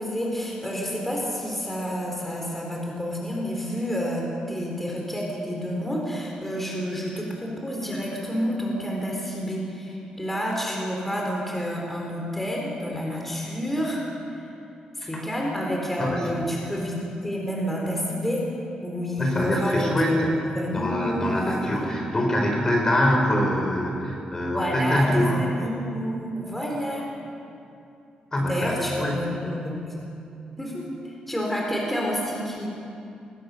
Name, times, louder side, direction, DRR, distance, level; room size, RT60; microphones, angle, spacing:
voice 1, 0.0-14.0 14.3-14.4 15.0-18.4 18.8-21.4 21.7-21.9 24.4-27.0 28.4-29.9 30.6-32.7, equal, 10° left, -2 dB, 4.3 m, -29 dB
voice 2, 19.2-20.3 20.7-25.4 28.3-29.3, equal, 25° left, 1 dB, 4.6 m, -24 dB
28.0 x 21.5 x 6.9 m, 2.7 s
wide cardioid pair, 145°, 3 cm